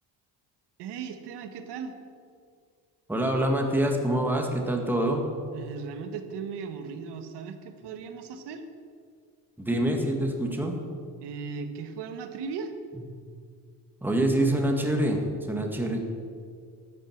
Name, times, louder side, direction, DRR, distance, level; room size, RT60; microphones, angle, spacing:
voice 1, 0.8-1.9 5.5-8.6 11.2-12.7, right 5 dB, 75° right, 7 dB, 1.3 m, -37 dB
voice 2, 3.1-5.3 9.6-10.8 14.0-16.0, right 1 dB, 5° right, 2 dB, 1.7 m, -26 dB
13.0 x 9.2 x 7.2 m, 2.2 s
cardioid pair, 130°, 41 cm